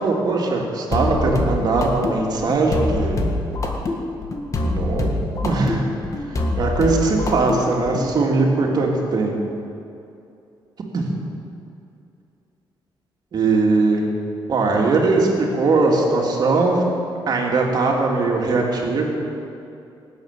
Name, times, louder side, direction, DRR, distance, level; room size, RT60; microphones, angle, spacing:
voice 1, 0.0-3.2 4.6-5.1 5.4-5.9 6.3-9.3 10.9-11.0 13.3-14.0 14.5-16.8 17.3-19.1, right 3 dB, 50° right, 0 dB, 2.8 m, -20 dB
sound 1, 0.9-8.1, left 2 dB, 40° left, 1.8 m, -25 dB
18.5 x 8.4 x 8.4 m, 2.6 s
cardioid pair, 135°, 9 cm